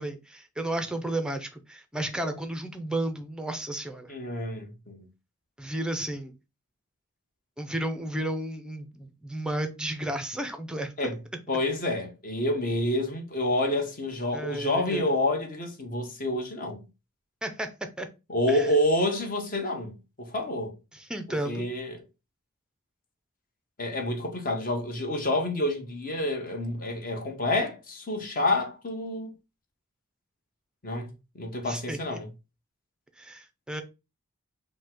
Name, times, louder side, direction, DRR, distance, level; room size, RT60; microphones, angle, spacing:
voice 1, 0.0-4.1 5.6-6.3 7.6-10.9 14.3-15.1 17.4-18.1 18.5-18.7 20.9-21.7 31.6-32.2 33.2-33.8, right 1 dB, 5° right, 0.5 m, -33 dB
voice 2, 4.1-5.1 11.0-11.2 11.5-16.8 18.3-20.7 21.4-22.0 23.8-29.3 30.8-31.1 31.3-32.3, left 1 dB, 40° left, 1.0 m, -28 dB
5.2 x 2.2 x 3.7 m
head